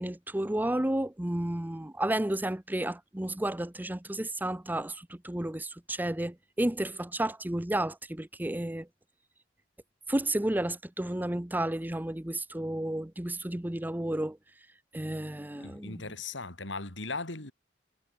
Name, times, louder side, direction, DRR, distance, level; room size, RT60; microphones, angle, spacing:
voice 1, 0.0-8.9 10.1-14.4 14.9-16.0, right 1 dB, 10° right, 0.7 m, -32 dB
voice 2, 15.6-17.5, left 3 dB, 80° left, 4.5 m, -38 dB
head